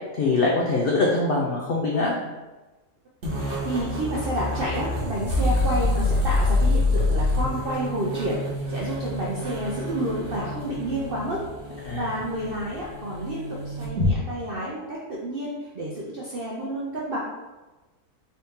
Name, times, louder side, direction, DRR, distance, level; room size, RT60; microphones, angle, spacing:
voice 1, 0.2-2.1 11.9-12.1, left 3 dB, 75° left, -3 dB, 0.5 m, -23 dB
sound 1, 3.2-14.1, left 2 dB, 50° right, 1.1 m, -26 dB
voice 2, 3.4-8.4 8.7-11.4 11.9-17.2, right 1 dB, 70° right, -4 dB, 0.5 m, -30 dB
4.0 x 2.7 x 3.6 m, 1.2 s
omnidirectional pair, 1.7 m